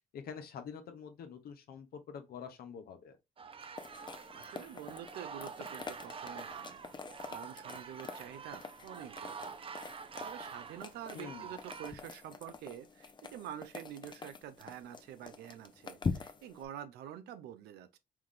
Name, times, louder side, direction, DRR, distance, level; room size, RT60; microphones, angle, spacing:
voice 1, 0.1-3.2 11.1-11.5, left 7 dB, 70° left, 0.9 m, -46 dB
sound 1, 3.4-11.9, right 6 dB, 35° right, 0.5 m, -47 dB
sound 2, 3.8-16.6, left 4 dB, 30° left, 0.6 m, -45 dB
voice 2, 4.3-6.9 7.3-9.5 10.2-18.0, right 10 dB, 85° right, 0.6 m, -47 dB
4.7 x 2.4 x 3.7 m
cardioid pair, 75°, 16 cm